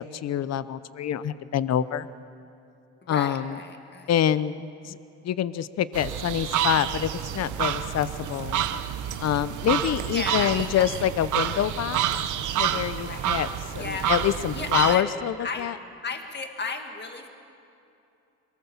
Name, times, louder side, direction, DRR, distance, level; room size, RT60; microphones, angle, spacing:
voice 1, 0.0-2.1 3.1-3.6 4.1-5.0 5.2-8.6 9.2-12.0 12.6-15.7, left 10 dB, 60° left, 15 dB, 0.8 m, -26 dB
voice 2, 3.0-4.1 10.1-10.9 11.3-11.5 13.1-13.3 13.7-14.1 14.5-15.1 15.4-15.7 16.0-17.3, left 4 dB, 35° left, 4 dB, 2.2 m, -34 dB
sound 1, 5.9-15.0, right 10 dB, 80° right, 1.0 m, -28 dB
22.5 x 19.0 x 7.2 m, 2.7 s
cardioid pair, 90°, 30 cm